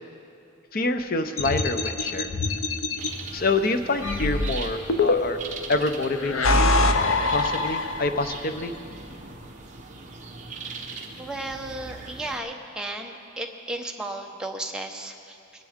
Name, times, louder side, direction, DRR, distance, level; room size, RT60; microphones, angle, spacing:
voice 1, 0.7-2.3 3.3-5.4 5.7-6.8 7.3-8.7, left 2 dB, 45° left, 8 dB, 0.6 m, -26 dB
sound 1, 1.4-3.1 4.0-5.5 6.2-8.3, left 2 dB, 80° left, 0.7 m, -24 dB
sound 2, 3.0-12.4, right 3 dB, 35° right, 1.0 m, -40 dB
voice 2, 11.2-15.6, right 1 dB, 5° right, 1 dB, 0.7 m, -34 dB
21.0 x 10.5 x 3.6 m, 2.5 s
head